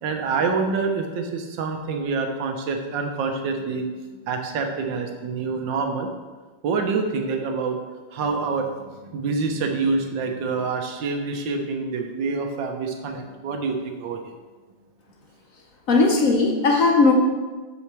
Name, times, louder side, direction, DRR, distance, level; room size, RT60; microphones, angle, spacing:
voice 1, 0.0-3.8 4.3-6.1 6.6-7.8 8.1-14.3, right 4 dB, 80° right, 4 dB, 1.5 m, -26 dB
voice 2, 15.9-17.1, left 3 dB, 55° left, 0 dB, 1.1 m, -17 dB
7.1 x 5.6 x 4.7 m, 1.3 s
omnidirectional pair, 2.0 m